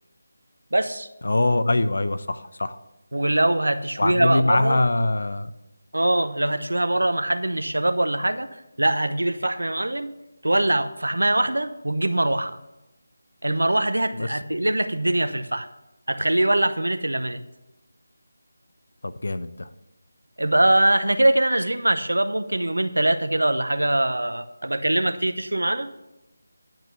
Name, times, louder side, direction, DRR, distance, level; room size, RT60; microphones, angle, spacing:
voice 1, 0.7-1.1 3.1-4.8 5.9-10.1 10.4-12.6 13.4-15.7 16.1-17.4 20.4-25.9, right 1 dB, 80° right, 10 dB, 0.8 m, -22 dB
voice 2, 1.2-2.8 4.0-5.5 14.1-14.3 19.0-19.7, left 2 dB, 65° left, 12 dB, 0.8 m, -23 dB
10.5 x 6.0 x 6.7 m, 0.94 s
figure-of-eight pair, 160°, 0 cm